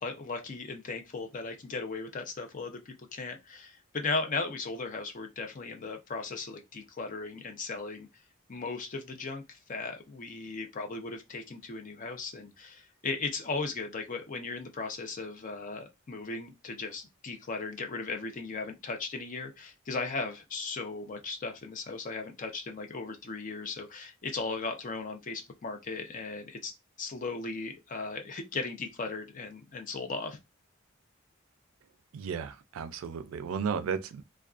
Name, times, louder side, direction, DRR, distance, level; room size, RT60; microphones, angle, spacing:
voice 1, 0.0-8.1 8.5-26.7 27.0-30.4, left 3 dB, 40° left, 0.5 m, -37 dB
voice 2, 32.1-34.2, right 6 dB, 85° right, 0.3 m, -34 dB
2.5 x 2.2 x 2.3 m
head